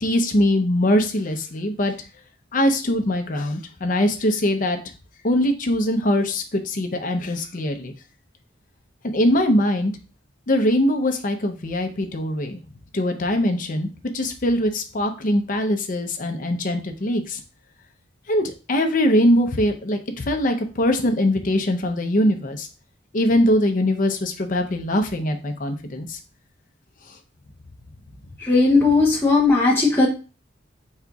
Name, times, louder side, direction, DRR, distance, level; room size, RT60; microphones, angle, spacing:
voice 1, 0.0-1.9 2.5-4.8 5.2-7.9 9.0-9.9 10.5-12.6 12.9-13.9 14.1-17.4 18.3-22.7 23.1-26.2, left 1 dB, 45° left, 5 dB, 0.7 m, -22 dB
voice 2, 28.4-30.1, left 3 dB, 10° left, -4 dB, 0.8 m, -17 dB
4.9 x 4.3 x 2.3 m, 0.34 s
head